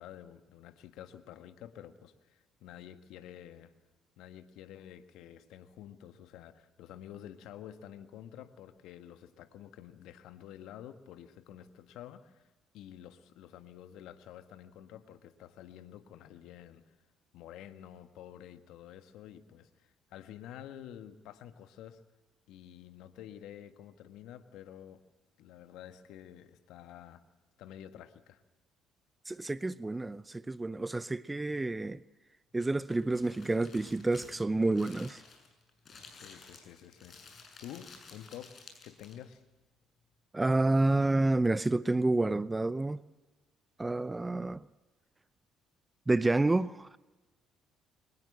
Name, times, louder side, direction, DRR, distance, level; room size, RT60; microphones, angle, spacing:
voice 1, 0.0-3.7 4.2-17.0 17.3-22.0 22.5-25.0 25.4-27.2 27.6-28.4 36.1-37.2 37.6-39.4, left 11 dB, 70° left, 1.5 m, -50 dB
voice 2, 29.3-32.0 32.5-35.2 40.3-43.0 43.8-44.7 46.1-47.0, right 2 dB, 20° right, 0.6 m, -29 dB
Crumpling crinkling, 32.6-39.3, left 4 dB, 45° left, 7.0 m, -53 dB
24.0 x 19.5 x 7.9 m
hypercardioid pair, 55°, 0 cm